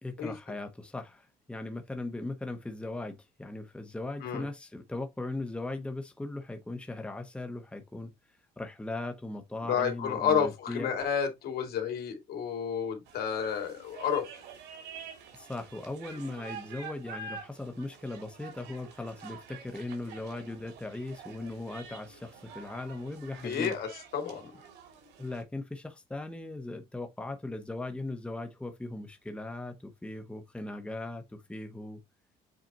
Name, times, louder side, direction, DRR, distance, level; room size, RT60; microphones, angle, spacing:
voice 1, 0.0-8.1 8.6-10.9 15.3-23.7 25.2-32.0, left 2 dB, 5° left, 1.0 m, -38 dB
voice 2, 9.7-14.2 23.4-24.5, left 7 dB, 65° left, 2.6 m, -30 dB
sound 1, 13.1-25.4, right 5 dB, 80° right, 2.8 m, -48 dB
7.9 x 4.2 x 3.0 m
cardioid pair, 110°, 17 cm